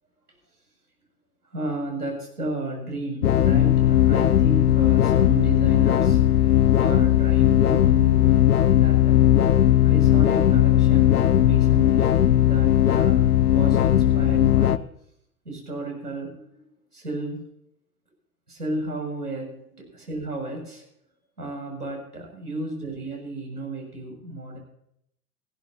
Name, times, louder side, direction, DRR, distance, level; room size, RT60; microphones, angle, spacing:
voice 1, 1.4-6.2 6.8-8.4 8.7-9.2 9.8-14.8 15.4-16.5 16.9-17.5 18.5-20.9 21.4-24.6, right 2 dB, 90° right, 0 dB, 7.1 m, -33 dB
sound 1, 3.2-14.8, left 11 dB, 80° left, 0.8 m, -18 dB
20.0 x 15.0 x 2.9 m, 0.72 s
figure-of-eight pair, 95°, 45 cm